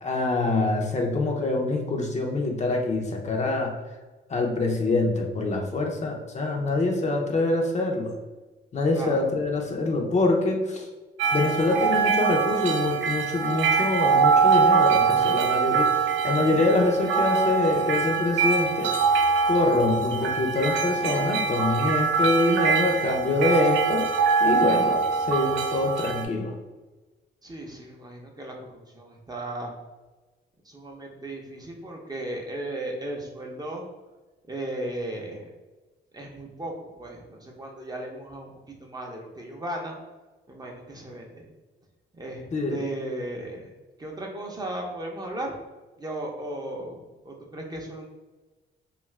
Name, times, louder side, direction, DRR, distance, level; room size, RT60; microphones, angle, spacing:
voice 1, 0.0-3.7 4.3-8.2 8.7-10.9 11.3-15.9 16.2-18.9 19.5-24.1 24.4-26.5 42.5-42.8, left 2 dB, 35° left, 1 dB, 0.5 m, -25 dB
voice 2, 8.9-9.3 27.4-28.5 28.9-29.7 30.6-33.8 34.5-35.5 36.1-38.5 38.8-40.0 40.5-41.5 42.1-43.7 44.0-45.5 46.0-48.1, right 1 dB, 20° right, 0 dB, 0.6 m, -36 dB
sound 1, 11.2-26.2, right 5 dB, 70° right, 0.5 m, -23 dB
2.6 x 2.4 x 3.1 m, 1.2 s
cardioid pair, 90°, 20 cm